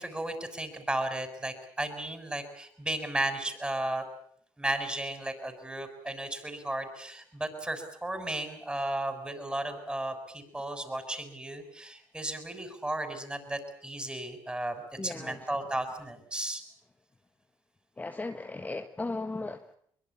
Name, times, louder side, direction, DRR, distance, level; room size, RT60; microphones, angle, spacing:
voice 1, 0.0-4.0 4.6-16.6, right 1 dB, 10° right, 8 dB, 6.6 m, -34 dB
voice 2, 15.0-15.4 18.0-19.7, left 3 dB, 20° left, 6 dB, 1.5 m, -36 dB
23.5 x 22.0 x 8.6 m, 0.64 s
cardioid pair, 80°, 8 cm